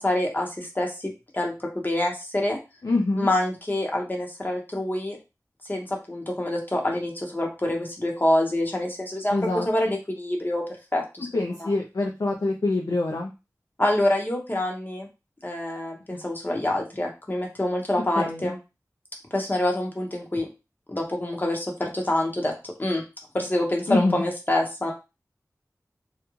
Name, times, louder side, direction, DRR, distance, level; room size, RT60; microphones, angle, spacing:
voice 1, 0.0-2.6 3.2-5.2 5.7-9.3 9.7-10.6 10.9-11.3 11.6-11.7 13.8-15.1 15.4-18.6 19.3-20.5 20.9-22.5 22.8-23.0 23.3-24.9, left 1 dB, 30° left, 0 dB, 0.7 m, -26 dB
voice 2, 2.8-3.3 9.3-10.0 11.3-13.3 18.2-18.5 23.9-24.2, left 2 dB, 70° left, 0 dB, 0.4 m, -25 dB
2.4 x 2.1 x 3.0 m, 0.27 s
wide cardioid pair, 60°, 6 cm